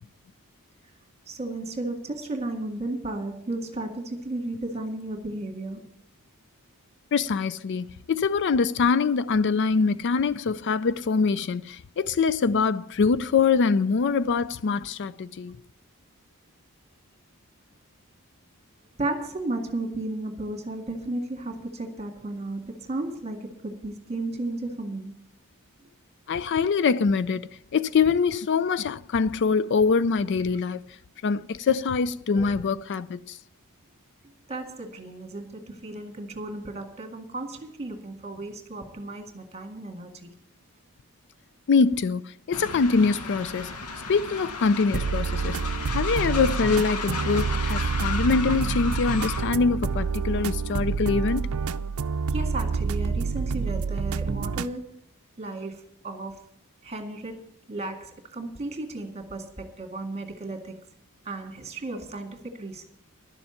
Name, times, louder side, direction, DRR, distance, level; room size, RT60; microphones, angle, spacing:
voice 1, 1.3-5.9 19.0-25.2 32.3-32.5 34.5-40.3 52.3-55.0 55.4-56.5 56.8-57.4 57.7-60.7 61.2-62.8, right 2 dB, 30° right, 2.0 m, -34 dB
voice 2, 7.1-15.6 26.3-30.8 31.2-33.4 41.7-43.7 44.1-45.6 45.9-51.5, left 5 dB, 55° left, 0.4 m, -24 dB
Train, 42.5-49.6, left 4 dB, 90° left, 1.2 m, -34 dB
sound 1, 44.9-54.7, right 5 dB, 70° right, 0.5 m, -28 dB
11.5 x 7.0 x 8.8 m
head